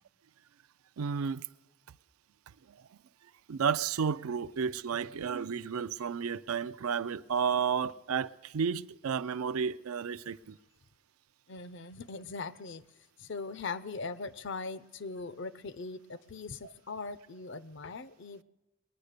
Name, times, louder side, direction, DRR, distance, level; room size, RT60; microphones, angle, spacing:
voice 1, 1.0-1.5 2.7-2.8 3.5-10.6, right 6 dB, 80° right, 0.5 m, -32 dB
voice 2, 11.5-18.4, left 4 dB, 55° left, 0.6 m, -41 dB
22.0 x 9.5 x 6.6 m
head